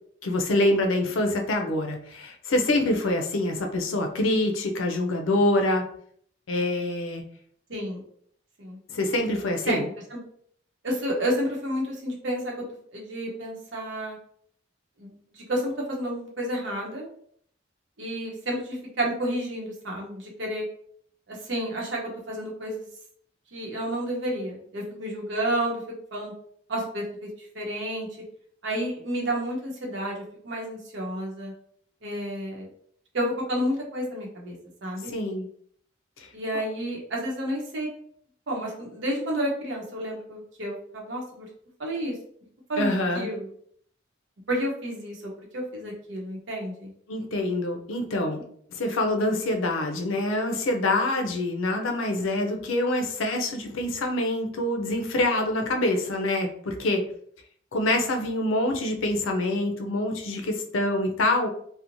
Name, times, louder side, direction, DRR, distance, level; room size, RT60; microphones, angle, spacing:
voice 1, 0.2-5.8 6.5-7.2 8.9-9.9 35.1-35.5 36.2-36.3 42.8-43.3 47.1-48.4 48.7-57.0 57.7-61.5, left 1 dB, 85° left, 4 dB, 0.5 m, -25 dB
voice 2, 7.7-8.0 8.6-8.8 9.7-9.9 10.1-10.2 10.8-12.5 12.9-14.2 15.0-17.1 18.0-20.6 21.3-22.0 22.3-22.9 23.5-25.8 26.1-26.3 26.7-28.1 28.6-31.5 32.0-32.7 33.1-34.6 34.8-35.1 36.3-37.9 38.5-41.5 41.8-42.1 42.7-43.5 44.5-46.9, right 1 dB, 65° right, -1 dB, 0.8 m, -30 dB
2.9 x 2.1 x 2.5 m, 0.63 s
head